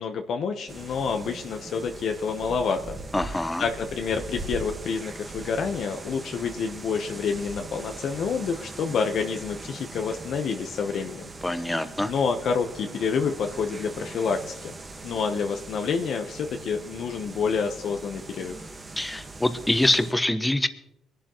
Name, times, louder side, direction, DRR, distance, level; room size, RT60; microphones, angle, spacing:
voice 1, 0.0-3.0 3.3-11.3 12.1-14.7 15.0-18.6, left 5 dB, 65° left, 5 dB, 1.0 m, -28 dB
sound 1, 0.7-20.1, right 3 dB, 30° right, 1.5 m, -41 dB
voice 2, 3.1-3.6 11.4-12.1 19.0-20.7, left 1 dB, 10° left, 11 dB, 1.0 m, -24 dB
23.0 x 11.5 x 3.0 m, 0.80 s
cardioid pair, 90°, 0 cm